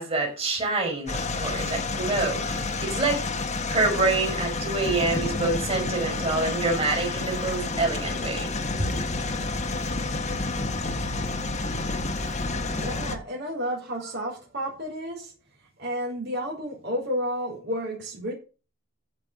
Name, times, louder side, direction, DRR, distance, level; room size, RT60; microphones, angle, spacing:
voice 1, 0.0-3.2 3.7-8.5 8.8-8.9, right 3 dB, 30° right, 6.0 m, -26 dB
sound 1, 1.1-13.2, left 3 dB, 35° left, 1.4 m, -29 dB
voice 2, 12.7-15.3 15.8-18.3, equal, 55° right, 5.0 m, -31 dB
14.5 x 5.8 x 6.9 m
head